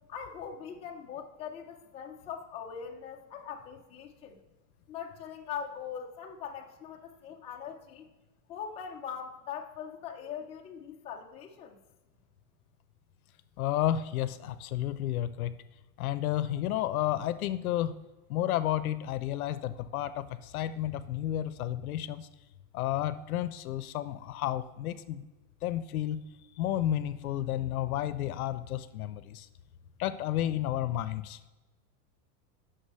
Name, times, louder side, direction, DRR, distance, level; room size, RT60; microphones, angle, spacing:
voice 1, 0.1-4.4 4.9-8.1 8.5-11.8, left 7 dB, 15° left, 0 dB, 0.6 m, -41 dB
voice 2, 13.6-15.6 16.0-18.0 18.3-22.3 22.7-25.3 25.6-26.2 26.6-29.5 30.0-31.4, left 12 dB, 65° left, 14 dB, 0.7 m, -31 dB
8.1 x 6.1 x 6.8 m, 1.1 s
supercardioid pair, 155°, 46 cm